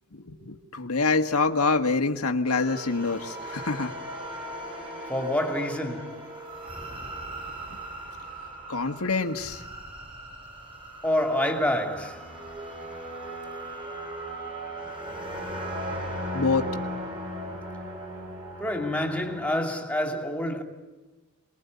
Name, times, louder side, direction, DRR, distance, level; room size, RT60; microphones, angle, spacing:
voice 1, 0.1-3.9 8.7-9.6 16.3-16.7, left 3 dB, 90° left, 1.6 m, -26 dB
sound 1, 2.5-19.5, right 1 dB, 25° right, 6.2 m, -38 dB
voice 2, 5.1-6.3 11.0-12.3 18.6-20.6, left 1 dB, 5° left, 2.8 m, -27 dB
28.0 x 21.0 x 9.5 m
head